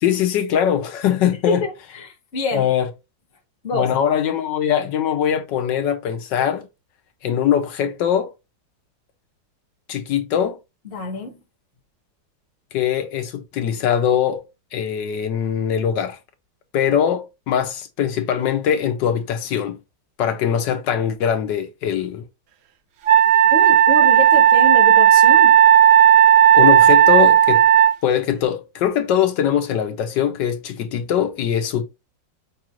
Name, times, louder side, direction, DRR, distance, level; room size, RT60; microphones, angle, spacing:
voice 1, 0.0-1.6 2.5-2.9 3.7-6.7 7.2-8.3 9.9-10.6 12.7-14.4 14.7-16.2 16.7-19.8 20.2-22.3 26.6-27.6 28.0-31.8, left 9 dB, 80° left, 1.4 m, -21 dB
voice 2, 1.5-2.7 3.6-3.9 10.9-11.4 23.5-25.6, left 2 dB, 40° left, 1.0 m, -26 dB
Wind instrument woodwind instrument, 23.1-28.0, right 10 dB, 70° right, 1.1 m, -12 dB
5.6 x 2.5 x 3.0 m
omnidirectional pair, 2.0 m